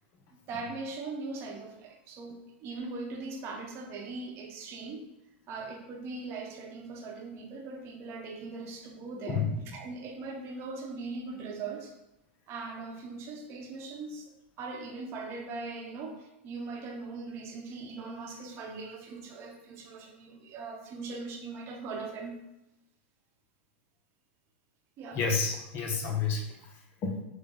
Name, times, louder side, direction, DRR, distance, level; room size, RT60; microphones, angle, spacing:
voice 1, 0.5-5.1 5.5-9.5 9.7-11.9 12.5-22.4 25.0-25.2, right 3 dB, 40° right, 2 dB, 0.9 m, -40 dB
voice 2, 25.1-27.2, left 5 dB, 40° left, 1 dB, 0.7 m, -30 dB
6.3 x 2.2 x 3.8 m, 0.92 s
hypercardioid pair, 120°, 6 cm